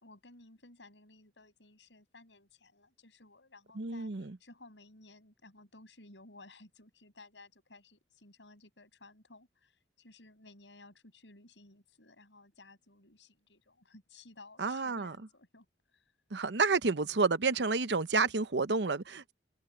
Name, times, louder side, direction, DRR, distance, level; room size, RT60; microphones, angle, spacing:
voice 1, 0.0-15.7 15.9-16.0, left 2 dB, 80° left, 7.3 m, -57 dB
voice 2, 3.7-4.4 14.6-15.1 16.3-19.3, right 4 dB, 70° right, 0.8 m, -30 dB
head